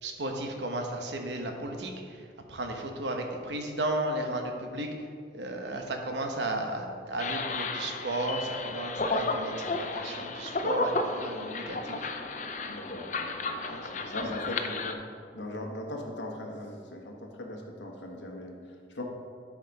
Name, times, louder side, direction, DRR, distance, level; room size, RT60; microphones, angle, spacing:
voice 1, 0.0-5.1 5.3-12.1 13.6-14.1, right 1 dB, 75° right, 3 dB, 1.0 m, -34 dB
sound 1, 7.2-14.9, left 3 dB, 45° left, 0.5 m, -33 dB
voice 2, 12.6-13.6 14.1-15.0 15.3-18.6 18.9-19.0, left 1 dB, 90° left, 1 dB, 1.3 m, -39 dB
9.9 x 5.0 x 5.3 m, 2.3 s
head